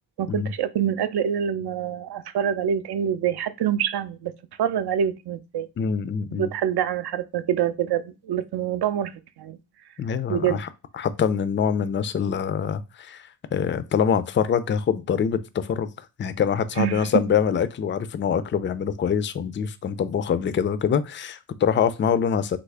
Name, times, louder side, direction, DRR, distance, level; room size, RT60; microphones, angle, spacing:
voice 1, 0.2-4.3 4.6-5.7 6.3-9.6 10.3-10.6 16.8-17.1, right 9 dB, 65° right, 0.5 m, -26 dB
voice 2, 5.8-6.5 10.0-10.7 10.9-13.2 13.5-15.9 16.2-22.6, left 7 dB, 30° left, 0.3 m, -24 dB
3.5 x 2.0 x 3.3 m
cardioid pair, 55°, 43 cm